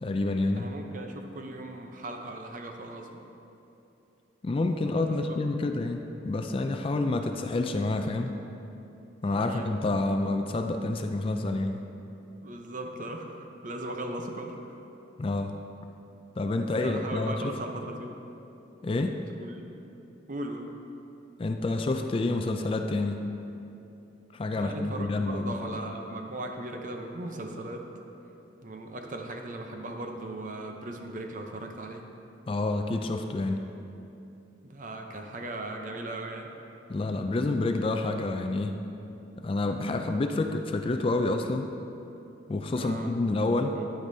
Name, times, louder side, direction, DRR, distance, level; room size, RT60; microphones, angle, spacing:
voice 1, 0.0-0.7 4.4-8.3 9.2-11.8 15.2-15.5 16.4-17.5 18.8-19.2 21.4-23.2 24.3-25.8 32.5-33.6 36.9-38.8 39.4-41.7 42.5-43.7, left 2 dB, 30° left, 6 dB, 0.3 m, -28 dB
voice 2, 0.5-3.2 5.1-5.2 9.2-9.8 12.4-14.8 16.8-18.2 19.4-19.6 20.3-20.7 24.6-27.9 28.6-32.0 34.6-36.5 42.8-43.1 43.7-43.9, right 1 dB, 45° right, 3 dB, 0.7 m, -38 dB
10.0 x 9.4 x 2.7 m, 2.9 s
head